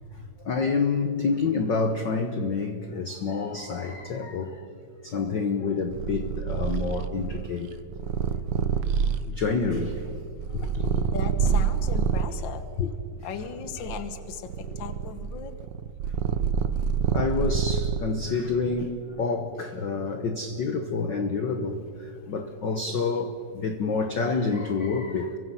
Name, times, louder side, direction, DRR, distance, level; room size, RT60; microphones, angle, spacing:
voice 1, 0.1-4.7 5.0-7.7 8.4-8.5 9.2-10.1 10.5-11.1 12.8-12.9 14.7-14.8 17.1-25.4, left 4 dB, 85° left, 6 dB, 1.0 m, -28 dB
Purr, 5.9-12.4 13.1-18.3, right 7 dB, 75° right, 1.3 m, -27 dB
voice 2, 11.1-12.7 13.2-15.5 22.2-22.3 23.0-23.2, left 7 dB, 55° left, 10 dB, 1.4 m, -37 dB
28.5 x 23.5 x 5.6 m, 2.4 s
omnidirectional pair, 3.7 m